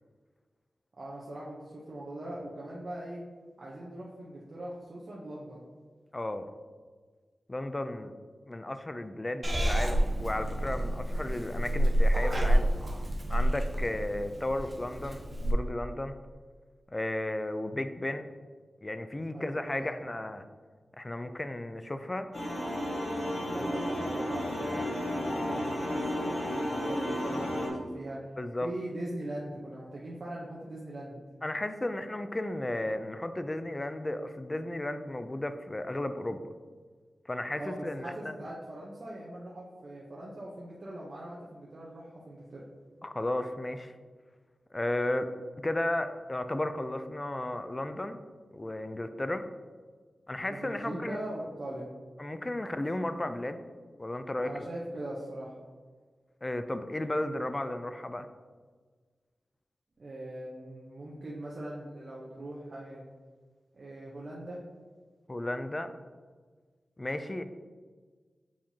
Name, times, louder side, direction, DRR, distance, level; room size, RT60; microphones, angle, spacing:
voice 1, 1.0-3.2 3.6-5.7 19.3-20.0 23.4-28.3 28.6-31.2 37.6-42.6 50.4-51.9 54.4-55.6 60.0-63.0 63.7-64.6, right 1 dB, 55° right, -5 dB, 1.0 m, -41 dB
voice 2, 6.1-6.5 7.5-8.1 8.5-12.7 13.3-16.1 16.9-18.3 18.8-20.4 21.0-22.3 28.4-28.7 31.4-36.4 37.3-38.4 43.0-43.9 44.7-45.3 45.6-48.2 48.5-49.5 50.3-51.2 52.2-53.6 54.0-54.6 56.4-58.3 65.3-65.9 67.0-67.4, left 1 dB, 25° left, 9 dB, 0.5 m, -34 dB
Purr / Meow, 9.4-15.5, right 1 dB, 25° right, 1.1 m, -28 dB
sound 1, 22.3-27.7, equal, 60° left, 1.8 m, -32 dB
7.2 x 4.5 x 2.9 m, 1.5 s
cardioid pair, 60°, 0 cm